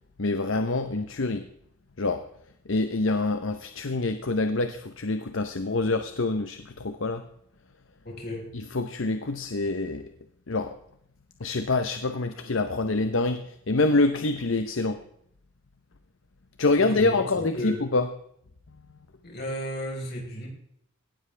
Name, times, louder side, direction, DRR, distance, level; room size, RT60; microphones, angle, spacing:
voice 1, 0.2-1.5 2.0-2.2 2.7-7.2 8.5-10.1 10.5-10.8 11.4-15.0 16.6-18.1, left 3 dB, 65° left, 9 dB, 0.8 m, -26 dB
voice 2, 8.0-8.5 16.8-17.8 19.2-20.5, equal, 45° left, 0 dB, 4.3 m, -34 dB
18.0 x 12.5 x 3.3 m, 0.72 s
head